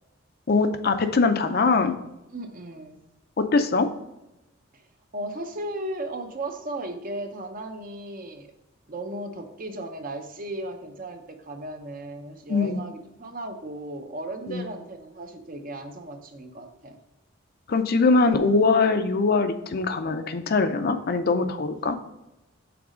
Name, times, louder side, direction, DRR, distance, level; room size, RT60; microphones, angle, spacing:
voice 1, 0.5-2.0 3.4-3.9 12.5-12.8 14.5-14.6 17.7-22.0, left 3 dB, 50° left, 8 dB, 0.5 m, -22 dB
voice 2, 2.3-3.0 5.1-8.5 8.9-17.0, right 1 dB, 45° right, 6 dB, 0.7 m, -36 dB
6.0 x 4.1 x 4.9 m, 0.94 s
head